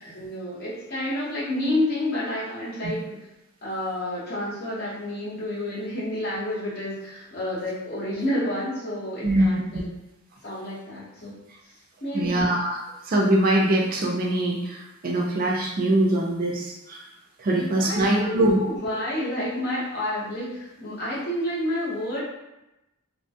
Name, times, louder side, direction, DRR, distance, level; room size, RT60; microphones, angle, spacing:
voice 1, 0.0-3.1 3.6-9.9 10.4-11.4 12.0-12.4 17.6-22.2, left 1 dB, 45° left, -8 dB, 1.1 m, -29 dB
voice 2, 12.1-12.8 13.1-17.0 17.4-18.6, right 1 dB, 40° right, -1 dB, 0.4 m, -23 dB
3.0 x 2.2 x 2.7 m, 0.93 s
head